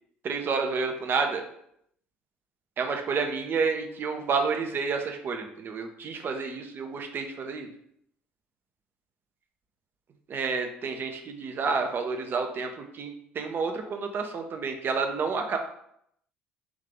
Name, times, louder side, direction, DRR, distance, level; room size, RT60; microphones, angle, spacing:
voice 1, 0.2-1.5 2.8-7.7 10.3-12.7 12.9-15.6, right 5 dB, 40° right, 5 dB, 0.6 m, -29 dB
3.6 x 2.7 x 3.8 m, 0.72 s
figure-of-eight pair, 55°, 5 cm